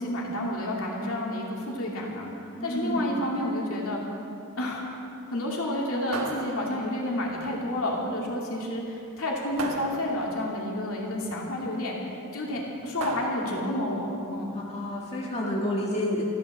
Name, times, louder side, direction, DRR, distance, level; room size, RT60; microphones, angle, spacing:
voice 1, 0.0-2.3 2.6-4.0 4.6-4.9 5.3-14.6, left 1 dB, 70° left, -2 dB, 2.6 m, -30 dB
voice 2, 2.6-3.2 14.5-16.2, left 1 dB, 30° left, -4 dB, 1.9 m, -29 dB
sound 1, 6.1-7.2 9.6-10.6 13.0-13.9, right 3 dB, 75° right, 1.3 m, -36 dB
14.0 x 11.0 x 7.3 m, 2.8 s
head